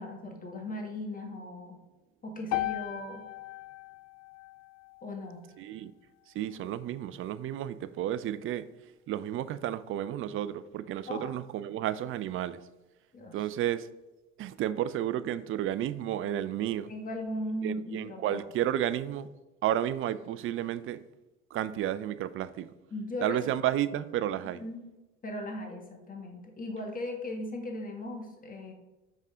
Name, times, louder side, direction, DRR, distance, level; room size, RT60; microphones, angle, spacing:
voice 1, 0.0-1.8 2.2-3.2 5.0-5.4 11.1-11.3 13.1-13.5 16.8-18.4 22.9-23.4 24.5-24.8 25.2-28.7, left 1 dB, 20° left, 1.6 m, -38 dB
sound 1, 2.5-6.7, left 16 dB, 45° left, 0.5 m, -38 dB
voice 2, 5.6-5.9 6.3-8.7 9.1-12.6 13.3-13.9 14.4-16.9 17.6-19.3 19.6-21.0 21.5-22.7 23.2-24.6, right 11 dB, 35° right, 0.4 m, -32 dB
6.2 x 5.4 x 3.7 m
hypercardioid pair, 75°, 37 cm